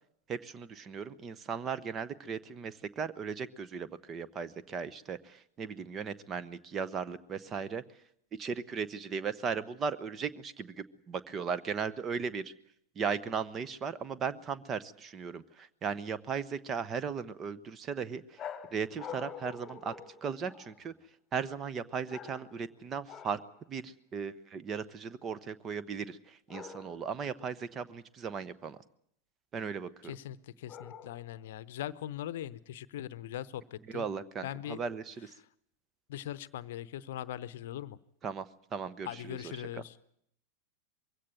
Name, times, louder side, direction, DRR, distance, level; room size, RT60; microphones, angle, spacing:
voice 1, 0.3-7.8 8.4-12.5 13.0-18.4 18.7-19.9 20.2-20.9 21.3-23.4 23.7-28.8 29.5-29.9 33.9-35.3 38.2-39.5, right 6 dB, 25° right, 15 dB, 0.9 m, -37 dB
sound 1, 18.4-20.9 22.1-22.7 23.1-23.5 26.5-27.2 30.7-31.4, left 7 dB, 25° left, 1.5 m, -46 dB
voice 2, 30.0-34.1 34.4-34.8 36.1-38.0 39.0-40.0, left 12 dB, 55° left, 17 dB, 0.8 m, -40 dB
22.5 x 16.5 x 9.3 m, 0.72 s
figure-of-eight pair, 90°, 0 cm